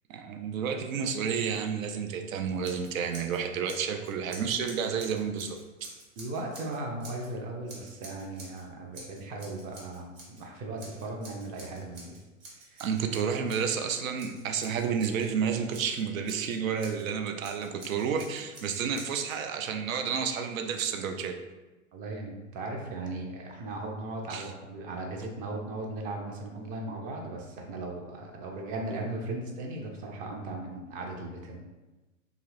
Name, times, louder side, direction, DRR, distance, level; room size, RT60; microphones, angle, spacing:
voice 1, 0.1-5.6 12.8-21.4 24.3-24.5, right 6 dB, 85° right, 5 dB, 0.5 m, -30 dB
Scissors, 2.6-3.4 3.6-7.3 7.7-8.6 8.9-10.4 10.8-15.3 15.7-17.0 17.4-19.4, right 2 dB, 60° right, 1.2 m, -48 dB
voice 2, 6.2-12.1 12.7-12.8 21.9-31.6, right 2 dB, 20° right, 1 dB, 0.4 m, -37 dB
2.7 x 2.4 x 3.1 m, 1.1 s
hypercardioid pair, 115°, 39 cm